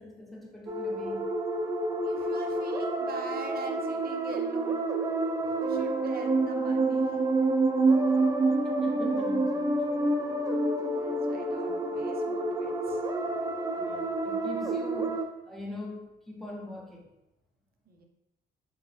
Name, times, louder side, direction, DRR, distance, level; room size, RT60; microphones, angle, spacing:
voice 1, 0.0-1.3 8.5-10.5 11.3-11.7 13.7-17.1, left 1 dB, ahead, -1 dB, 0.8 m, -43 dB
sound 1, 0.7-15.2, right 2 dB, 20° right, 0.3 m, -28 dB
voice 2, 2.0-4.8 5.4-7.2 10.8-13.1 17.9-18.0, right 4 dB, 50° right, 3 dB, 0.7 m, -43 dB
5.0 x 2.0 x 3.3 m, 0.91 s
cardioid pair, 90°, 20 cm